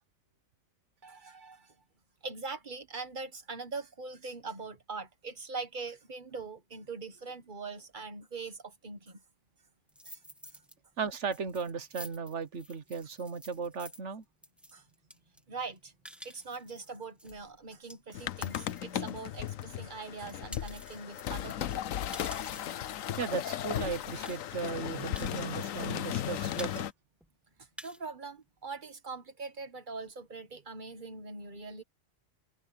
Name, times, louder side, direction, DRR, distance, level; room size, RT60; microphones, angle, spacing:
voice 1, 1.0-1.7 2.2-9.2 10.0-10.2 14.7-14.8 15.5-15.9 16.2-21.9 25.2-25.3 27.6-31.8, right 4 dB, 40° right, 1.6 m, -42 dB
sound 1, 9.9-10.8 11.1-19.7 20.1-22.9 23.5-23.6 23.8-23.9 24.3-24.8 25.2-26.0 26.2-26.9 27.2-27.3 27.6-28.1, equal, ahead, 1.6 m, -50 dB
voice 2, 11.0-14.2 23.2-26.9, right 5 dB, 60° right, 1.5 m, -36 dB
sound 2, 18.1-26.9, left 11 dB, 80° left, 1.1 m, -36 dB
omnidirectional pair, 1.4 m